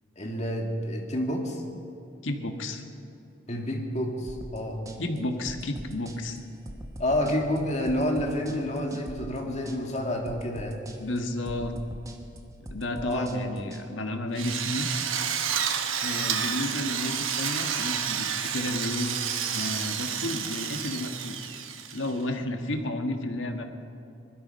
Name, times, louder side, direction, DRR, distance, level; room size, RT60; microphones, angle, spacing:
voice 1, 0.2-1.6 3.5-4.8 7.0-10.8 13.0-13.3, left 1 dB, 35° left, 1 dB, 2.1 m, -29 dB
voice 2, 2.2-2.8 5.0-6.4 11.0-11.7 12.7-14.9 16.0-19.2 19.5-21.5 21.9-23.6, left 1 dB, 75° left, 5 dB, 1.5 m, -32 dB
sound 1, 4.3-13.8, right 1 dB, 15° right, 1.1 m, -42 dB
Drill, 14.4-22.2, right 8 dB, 90° right, 1.1 m, -30 dB
20.5 x 12.5 x 5.5 m, 2.6 s
head